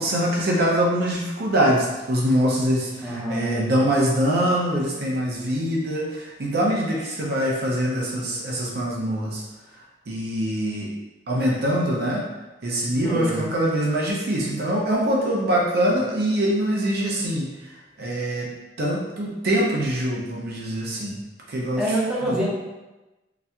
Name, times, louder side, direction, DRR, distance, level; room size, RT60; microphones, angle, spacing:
voice 1, 0.0-9.4 9.7-10.9 11.3-12.2 12.6-18.5 18.8-21.2 21.5-22.0 22.2-22.4, equal, 60° right, -3 dB, 0.6 m, -24 dB
voice 2, 3.0-3.6 13.0-13.4 21.8-22.5, right 1 dB, 5° right, -8 dB, 0.9 m, -26 dB
3.9 x 2.8 x 2.2 m, 1.1 s
head